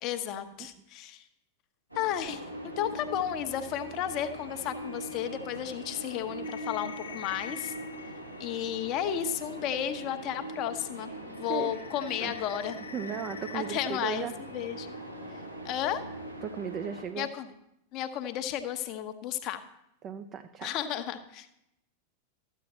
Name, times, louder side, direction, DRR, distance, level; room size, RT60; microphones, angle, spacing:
voice 1, 0.0-1.3 1.9-7.7 8.4-12.8 13.5-14.3 14.5-14.9 15.6-16.0 17.2-17.5 17.9-19.6 20.6-21.5, left 10 dB, 40° left, 9 dB, 1.0 m, -33 dB
sound 1, 1.9-17.0, right 1 dB, 90° right, 2.3 m, -42 dB
sound 2, 3.7-10.6 10.9-14.9, left 6 dB, 70° left, 0.6 m, -48 dB
voice 2, 11.5-11.8 12.2-12.3 12.9-14.3 16.4-17.3 20.0-20.8, right 8 dB, 30° right, 8 dB, 0.7 m, -36 dB
13.5 x 9.2 x 4.3 m, 0.83 s
figure-of-eight pair, 90°, 0 cm